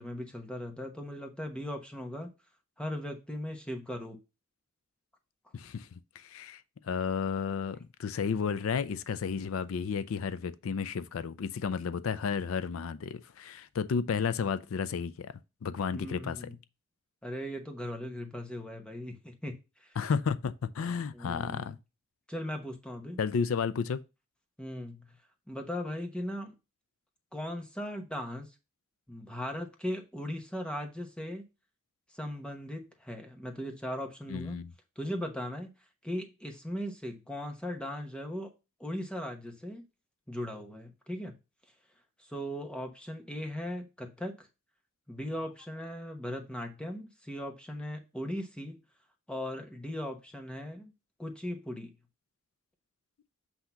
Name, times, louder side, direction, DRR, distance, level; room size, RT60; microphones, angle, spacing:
voice 1, 0.0-2.3 2.8-4.2 15.9-16.5 17.2-20.0 21.1-21.7 22.3-23.2 24.6-25.2 25.5-26.6 27.3-28.5 29.1-31.4 32.1-34.6 35.0-35.7 36.0-38.5 38.8-39.9 40.3-41.3 42.2-44.5 45.1-48.8 49.3-50.9 51.2-51.9, equal, 5° left, 1.0 m, -38 dB
voice 2, 5.5-15.3 15.6-16.5 20.0-21.8 23.2-24.0 34.3-34.7, left 6 dB, 70° left, 0.4 m, -32 dB
8.0 x 2.8 x 5.6 m
head